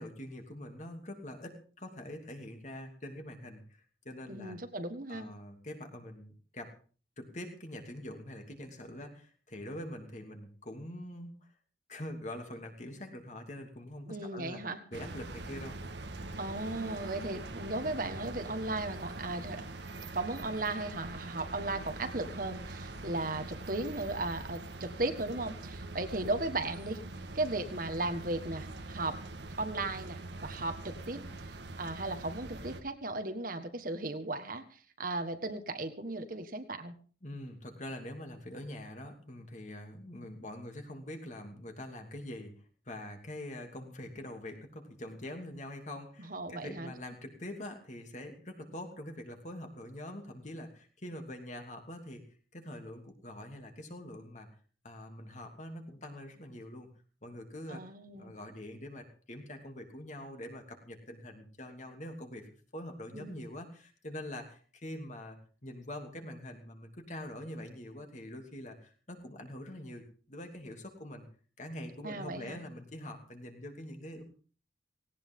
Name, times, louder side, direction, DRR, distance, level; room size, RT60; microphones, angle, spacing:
voice 1, 0.0-3.6 4.0-4.6 5.1-6.7 7.2-11.5 11.9-14.6 14.9-15.8 37.2-42.6 42.8-52.2 52.5-54.5 54.8-56.9 57.2-57.8 58.1-62.5 62.7-71.2 71.6-74.2, left 1 dB, 40° left, 4 dB, 2.9 m, -44 dB
voice 2, 4.3-5.3 14.1-14.8 16.4-19.6 20.1-27.0 27.3-29.2 29.6-31.2 31.5-36.9 46.2-46.9 57.7-58.3 63.1-63.4 72.0-72.6, right 2 dB, 50° right, 7 dB, 1.6 m, -36 dB
sound 1, 14.9-32.8, right 2 dB, 70° right, 1.6 m, -43 dB
18.0 x 18.0 x 3.8 m, 0.40 s
head